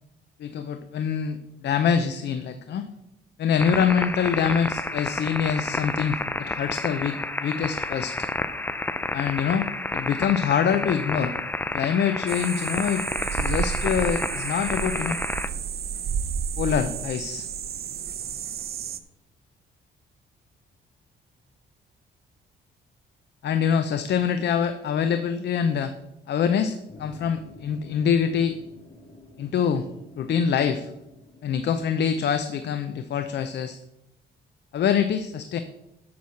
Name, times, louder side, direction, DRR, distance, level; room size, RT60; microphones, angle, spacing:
voice 1, 0.4-2.9 3.4-8.3 9.1-9.7 9.9-11.3 11.7-13.0 13.3-15.2 16.6-17.5 23.4-25.9 26.3-28.6 29.4-29.9 30.2-30.9 31.4-33.8 34.7-35.6, left 7 dB, 60° left, 10 dB, 0.6 m, -25 dB
sound 1, 3.6-15.5, left 2 dB, 10° left, 0.5 m, -30 dB
sound 2, 12.3-19.0, right 7 dB, 50° right, 0.7 m, -31 dB
sound 3, 26.9-33.2, left 2 dB, 45° left, 1.7 m, -50 dB
7.2 x 6.0 x 6.3 m, 0.89 s
cardioid pair, 90°, 20 cm